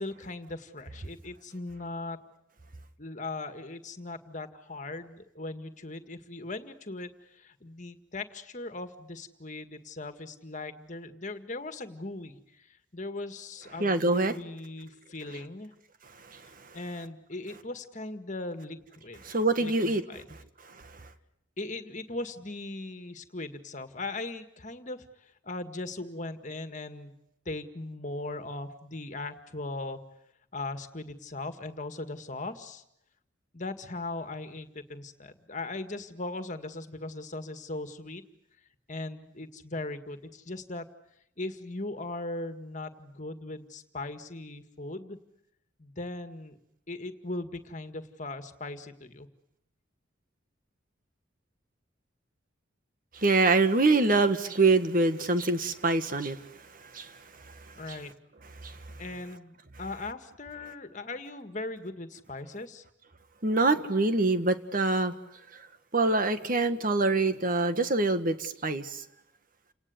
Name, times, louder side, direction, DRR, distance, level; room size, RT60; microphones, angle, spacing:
voice 1, 0.0-2.2 3.0-15.7 16.7-19.3 19.6-20.3 21.6-27.1 27.5-30.0 30.5-32.8 33.5-38.2 38.9-40.9 41.4-45.2 45.8-46.6 46.9-49.3 57.7-58.1 59.0-62.9, left 2 dB, 40° left, 9 dB, 1.9 m, -39 dB
voice 2, 13.8-14.3 16.3-16.4 19.2-20.0 53.1-56.4 56.9-57.1 58.6-58.8 63.4-65.1 65.9-69.0, right 3 dB, 45° right, 10 dB, 1.7 m, -25 dB
29.5 x 19.0 x 9.6 m, 0.79 s
head